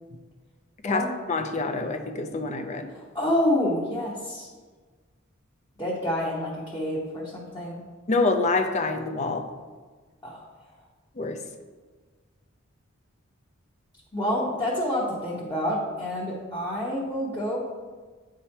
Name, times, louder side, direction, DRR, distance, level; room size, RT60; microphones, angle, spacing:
voice 1, 0.8-2.9 8.1-9.5 11.2-11.4, left 3 dB, 35° left, 6 dB, 0.5 m, -26 dB
voice 2, 2.9-4.5 5.8-7.8 10.2-10.5 14.1-17.6, left 1 dB, 20° left, -6 dB, 1.0 m, -28 dB
8.9 x 5.0 x 2.9 m, 1.4 s
head